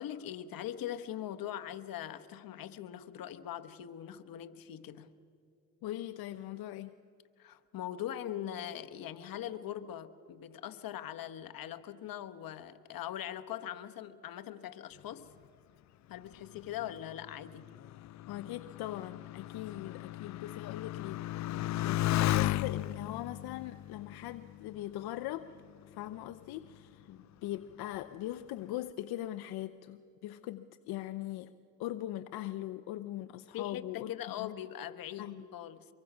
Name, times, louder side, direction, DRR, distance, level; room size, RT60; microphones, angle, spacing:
voice 1, 0.0-5.1 7.4-15.3 16.1-17.7 21.5-21.8 27.1-27.2 33.5-35.9, left 11 dB, 65° left, 9 dB, 1.2 m, -41 dB
voice 2, 5.8-6.9 18.3-25.5 25.9-27.1 27.4-31.5 31.8-34.1 34.4-34.5 35.2-35.4, left 14 dB, 85° left, 10 dB, 0.7 m, -41 dB
Motorcycle, 16.3-25.3 26.1-26.6, left 15 dB, 50° left, 0.4 m, -35 dB
24.5 x 23.0 x 6.1 m, 2.4 s
cardioid pair, 85°, 37 cm